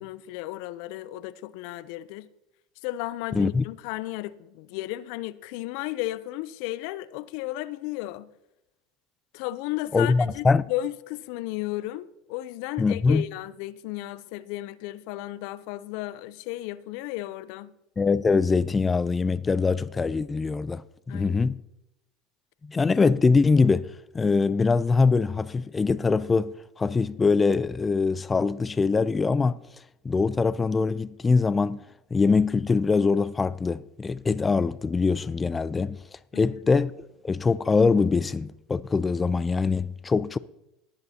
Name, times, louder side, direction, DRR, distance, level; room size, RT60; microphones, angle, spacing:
voice 1, 0.0-2.3 2.8-8.3 9.3-17.7 21.1-21.5 36.3-36.6, left 16 dB, 65° left, 0.6 m, -34 dB
voice 2, 3.3-3.6 9.9-10.6 12.8-13.3 18.0-21.6 22.6-23.9 24.1-29.6 30.0-31.8 32.1-36.0 36.3-36.9 37.2-40.4, left 4 dB, 20° left, 0.5 m, -23 dB
18.5 x 10.5 x 2.9 m
hypercardioid pair, 85°, 0 cm